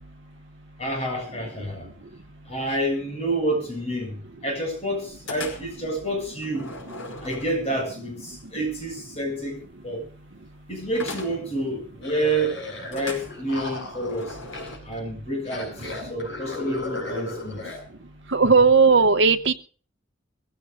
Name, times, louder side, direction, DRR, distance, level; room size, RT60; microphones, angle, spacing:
voice 1, 0.8-1.9 2.5-4.1 4.4-6.7 7.2-10.0 10.7-12.6 12.9-14.4 14.8-17.6, right 1 dB, 30° left, 7.9 m, -28 dB
sound 1, 5.3-5.9 6.4-7.9 11.0-11.6 12.9-14.8, left 2 dB, 85° left, 5.2 m, -38 dB
sound 2, 12.0-12.9 13.2-15.0 15.4-17.8, left 2 dB, 65° left, 7.4 m, -36 dB
voice 2, 18.3-19.5, right 4 dB, 65° right, 1.0 m, -16 dB
22.5 x 16.0 x 2.6 m
head